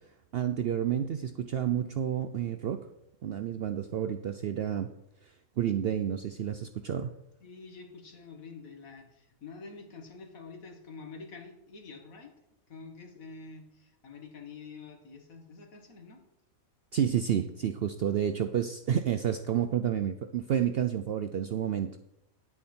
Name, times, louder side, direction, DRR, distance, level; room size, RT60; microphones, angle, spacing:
voice 1, 0.3-2.9 3.2-4.9 5.6-7.1 16.9-22.0, right 9 dB, 70° right, 9 dB, 0.6 m, -30 dB
voice 2, 7.4-12.3 12.7-16.2, left 4 dB, 75° left, 4 dB, 1.9 m, -47 dB
9.6 x 8.7 x 4.3 m, 0.84 s
omnidirectional pair, 1.5 m